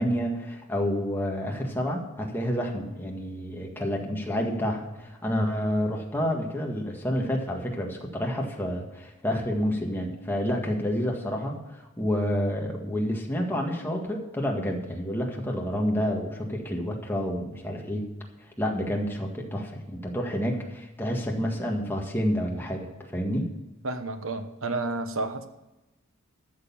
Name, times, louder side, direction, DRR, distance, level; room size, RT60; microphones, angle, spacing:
voice 1, 0.0-18.0 18.6-22.9 23.1-23.5, equal, 10° left, 0 dB, 1.7 m, -29 dB
voice 2, 23.8-25.5, right 2 dB, 65° right, 9 dB, 1.1 m, -31 dB
13.0 x 6.7 x 7.2 m, 1.0 s
head